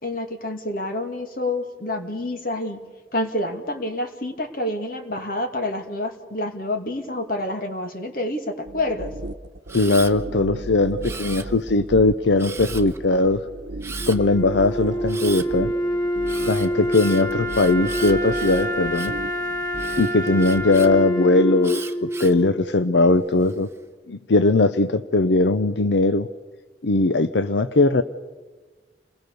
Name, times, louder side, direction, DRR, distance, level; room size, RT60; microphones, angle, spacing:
voice 1, 0.0-2.8 3.1-9.1, left 1 dB, 55° left, 5 dB, 2.6 m, -28 dB
sound 1, 8.6-21.0, right 2 dB, 85° right, 0.9 m, -36 dB
voice 2, 9.7-13.4 14.1-15.7 16.5-19.1 20.0-23.7 24.1-26.3 26.8-28.0, left 2 dB, 90° left, 12 dB, 0.7 m, -19 dB
Camera, 9.7-10.1 11.0-11.8 12.4-13.0 13.8-14.2 15.1-15.5 16.2-19.2 19.8-20.9 21.6-22.4 23.0-23.5, right 5 dB, 15° right, 1.2 m, -37 dB
Wind instrument woodwind instrument, 14.0-23.0, equal, 25° left, 3.2 m, -27 dB
29.0 x 20.5 x 6.9 m, 1.3 s
head